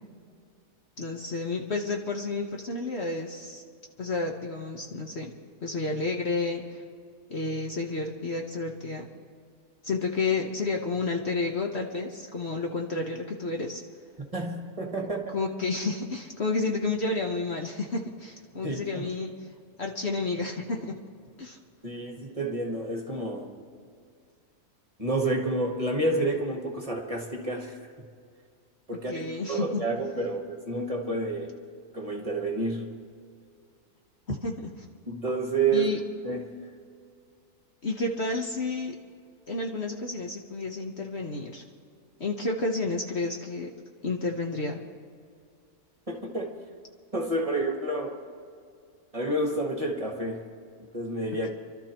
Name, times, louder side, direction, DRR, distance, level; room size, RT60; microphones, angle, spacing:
voice 1, 1.0-3.6 4.0-5.3 5.6-6.8 7.3-9.1 9.8-13.8 15.3-19.3 19.8-21.0 21.4-21.6 29.1-29.9 34.3-34.7 35.7-36.0 37.8-38.9 39.5-41.6 42.2-43.7 44.0-44.8, left 3 dB, 45° left, 1 dB, 1.2 m, -30 dB
voice 2, 14.3-15.3 18.6-19.1 21.8-23.6 25.0-28.1 28.9-31.6 31.9-32.9 35.1-35.9 36.2-36.7 46.1-46.6 47.1-48.2 49.1-50.4 50.9-51.5, right 2 dB, 25° right, 1 dB, 1.5 m, -29 dB
28.0 x 13.0 x 3.0 m, 2.2 s
omnidirectional pair, 1.6 m